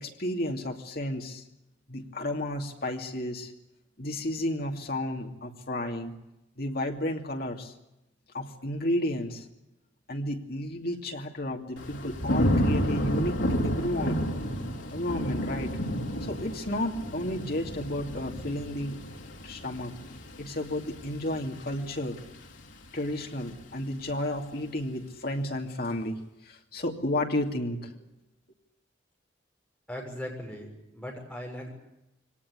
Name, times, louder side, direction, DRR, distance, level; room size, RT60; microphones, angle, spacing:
voice 1, 0.0-1.4 1.9-3.5 4.0-6.2 6.6-7.7 8.3-9.5 10.1-14.2 14.9-15.8 16.2-19.1 19.4-19.9 20.4-22.2 22.9-27.9, left 1 dB, 50° left, 2 dB, 2.7 m, -32 dB
Thunder / Rain, 11.8-22.7 23.1-23.6, equal, 70° left, 3.4 m, -31 dB
voice 2, 29.9-31.7, equal, 5° left, -2 dB, 6.7 m, -39 dB
23.5 x 18.5 x 9.8 m, 0.90 s
head